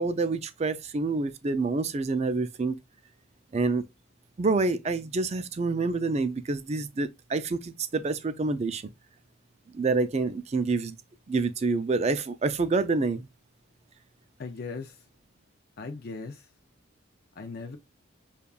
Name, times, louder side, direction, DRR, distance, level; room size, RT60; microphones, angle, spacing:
voice 1, 0.0-2.8 3.5-3.8 4.4-8.8 9.7-11.0 11.3-13.3, right 3 dB, 30° right, 0.3 m, -27 dB
voice 2, 14.4-15.0 15.8-16.5 17.4-17.8, left 4 dB, 45° left, 0.5 m, -38 dB
6.7 x 2.3 x 2.3 m
head